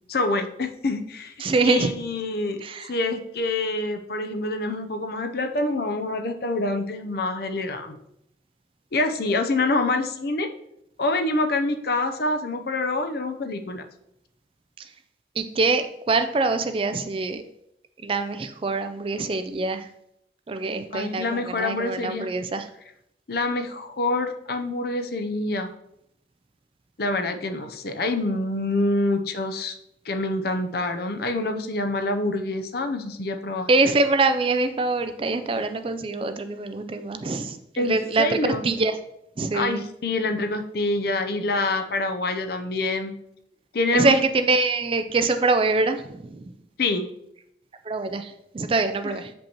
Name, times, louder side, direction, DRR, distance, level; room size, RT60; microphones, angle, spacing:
voice 1, 0.1-1.3 1.6-2.6 2.9-8.0 8.9-10.5 11.0-13.8 20.9-22.3 23.3-25.7 27.0-29.8 30.1-33.7 37.8-38.6 39.5-43.1 43.7-44.1 46.8-47.0, left 2 dB, 55° left, 6 dB, 0.6 m, -26 dB
voice 2, 1.4-1.9 2.6-2.9 14.8-14.9 15.4-17.4 18.0-19.9 20.5-22.7 33.7-39.0 39.4-39.8 43.9-46.4 47.8-49.3, right 3 dB, 30° right, 9 dB, 0.3 m, -24 dB
6.9 x 5.3 x 2.9 m, 0.78 s
head